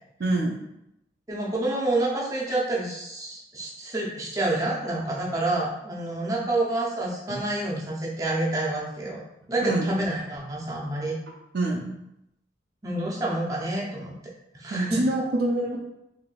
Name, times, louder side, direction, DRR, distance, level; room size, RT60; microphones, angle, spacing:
voice 1, 0.2-0.6 7.3-7.4 9.6-9.9 11.5-11.9 14.7-15.8, right 2 dB, 60° right, 0 dB, 0.5 m, -26 dB
voice 2, 1.3-9.2 9.5-11.1 12.8-14.1 14.5-15.0, right 2 dB, 20° right, -4 dB, 0.6 m, -28 dB
3.9 x 2.7 x 2.3 m, 0.83 s
head